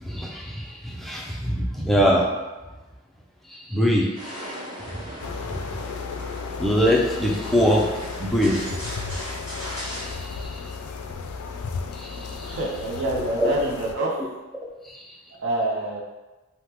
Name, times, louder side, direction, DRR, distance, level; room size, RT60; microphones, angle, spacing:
voice 1, 0.0-2.3 3.5-4.4 5.1-5.2 5.6-5.8 6.6-7.9 8.2-8.6 9.8-10.6 11.9-12.6 13.1-13.5 14.9-15.0, equal, ahead, -3 dB, 0.3 m, -24 dB
sound 1, 4.1-10.1, equal, 20° right, 1.1 m, -38 dB
sound 2, 5.2-13.9, left 4 dB, 90° left, 0.3 m, -34 dB
voice 2, 12.4-14.1 15.4-16.0, right 1 dB, 55° right, -3 dB, 0.6 m, -26 dB
3.4 x 2.1 x 2.8 m, 1.1 s
head